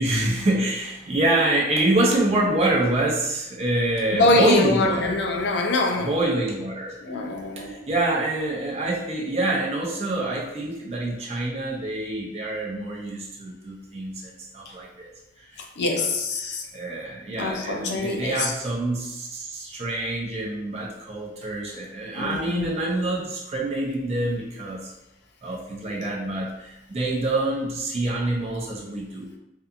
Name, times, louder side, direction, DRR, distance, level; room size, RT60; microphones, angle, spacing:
voice 1, 0.0-5.1 6.0-15.1 15.5-15.6 16.0-16.1 16.4-24.9 25.4-29.3, right 2 dB, 35° right, -3 dB, 0.4 m, -26 dB
voice 2, 4.1-6.1 7.0-7.8 15.6-16.6 17.4-18.5 22.2-22.7, left 2 dB, 70° left, 2 dB, 0.4 m, -24 dB
2.6 x 2.4 x 2.4 m, 0.90 s
head